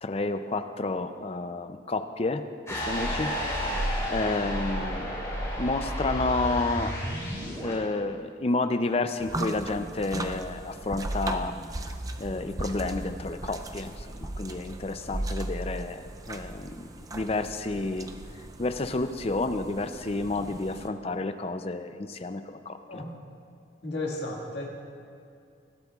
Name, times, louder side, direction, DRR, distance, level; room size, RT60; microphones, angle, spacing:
voice 1, 0.0-3.7 4.1-5.1 5.6-6.9 7.6-11.6 12.2-18.1 18.6-23.0, left 2 dB, 30° left, 9 dB, 0.5 m, -30 dB
sound 1, 2.7-7.8, equal, 15° left, 3.2 m, -31 dB
Keyboard (musical), 6.2-8.2, right 3 dB, 40° right, 1.8 m, -48 dB
sound 2, 9.2-20.9, right 1 dB, 20° right, 0.4 m, -37 dB
voice 2, 23.8-24.7, left 2 dB, 60° left, -2 dB, 1.9 m, -33 dB
20.0 x 12.0 x 2.4 m, 2.4 s
head